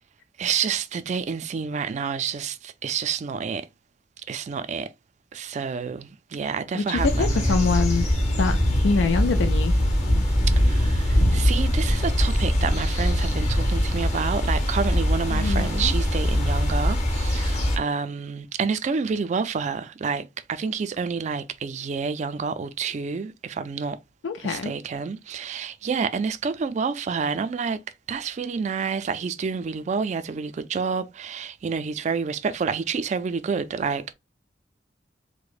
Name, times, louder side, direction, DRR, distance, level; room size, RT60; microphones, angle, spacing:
voice 1, 0.4-3.7 4.3-4.9 5.3-7.6 10.6-24.0 24.4-27.8 28.1-34.1, right 5 dB, 40° right, 0.3 m, -29 dB
voice 2, 6.7-8.1 8.4-8.6 8.8-9.7 15.3-15.9 24.2-24.7, left 4 dB, 90° left, 0.4 m, -24 dB
sound 1, 6.9-17.8, equal, 40° left, 1.0 m, -22 dB
4.8 x 2.1 x 2.4 m
head